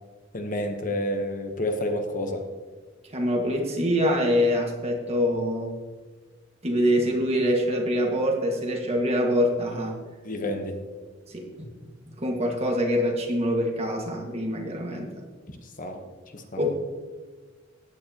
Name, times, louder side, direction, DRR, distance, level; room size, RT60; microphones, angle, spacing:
voice 1, 0.3-2.4 10.2-10.7 15.5-16.0 16.3-16.6, left 1 dB, 40° left, 5 dB, 1.0 m, -30 dB
voice 2, 3.1-5.7 6.6-9.9 11.3-11.5 12.1-15.1 16.6-16.7, equal, 30° right, 0 dB, 1.7 m, -25 dB
15.5 x 9.3 x 2.9 m, 1.4 s
head